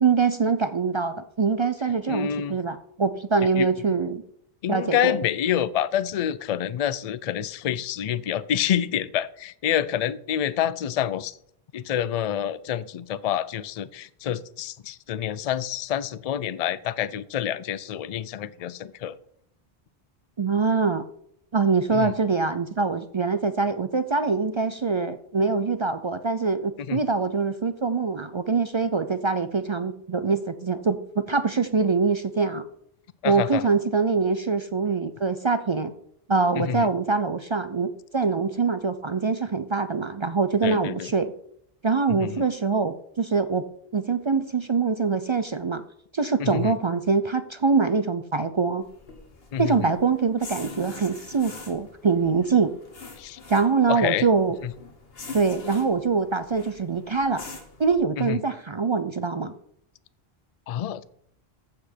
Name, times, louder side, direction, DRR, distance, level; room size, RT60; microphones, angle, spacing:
voice 1, 0.0-4.2 4.7-5.2 20.4-21.0 21.5-32.6 33.2-35.9 36.3-41.3 41.8-43.6 43.9-45.8 46.1-48.9 49.6-52.8 53.5-54.6 55.3-57.4 57.8-59.5, right 4 dB, 45° right, 11 dB, 0.4 m, -24 dB
voice 2, 2.1-2.6 3.6-3.7 4.6-11.4 11.7-19.2 21.9-22.1 26.9-27.0 33.2-33.7 36.6-36.9 40.6-41.1 42.2-42.4 46.4-46.7 49.5-49.9 53.2-53.4 53.9-54.3 54.6-54.7 58.2-58.4 60.7-61.0, left 10 dB, 50° left, 16 dB, 0.5 m, -27 dB
sound 1, 48.8-58.0, left 4 dB, 70° left, 1.7 m, -44 dB
15.0 x 5.0 x 4.4 m, 0.69 s
omnidirectional pair, 1.0 m